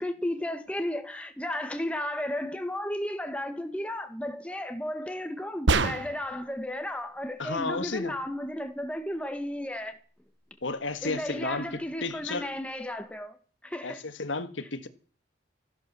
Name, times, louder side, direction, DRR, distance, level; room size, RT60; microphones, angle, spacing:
voice 1, 0.0-10.0 11.0-13.4 13.6-14.0, left 1 dB, 5° left, 1.7 m, -34 dB
sound 1, 5.7-6.4, right 3 dB, 75° right, 1.2 m, -25 dB
voice 2, 7.4-8.2 10.6-12.5 13.8-14.9, left 3 dB, 85° left, 1.7 m, -33 dB
14.5 x 11.5 x 7.1 m
head